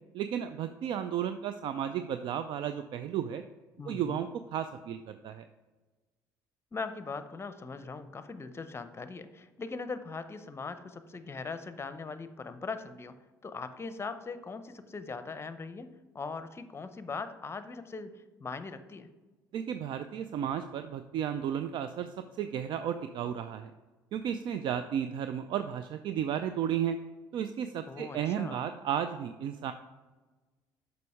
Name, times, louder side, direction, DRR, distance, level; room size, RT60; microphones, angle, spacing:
voice 1, 0.1-3.4 3.9-5.5 19.5-22.1 22.4-23.7 24.1-27.0 27.3-29.7, right 9 dB, 55° right, 10 dB, 0.4 m, -33 dB
voice 2, 3.8-4.2 6.7-13.1 13.4-19.1 27.9-28.6, left 4 dB, 25° left, 11 dB, 0.7 m, -40 dB
6.8 x 5.3 x 4.9 m, 1.2 s
hypercardioid pair, 60°, 10 cm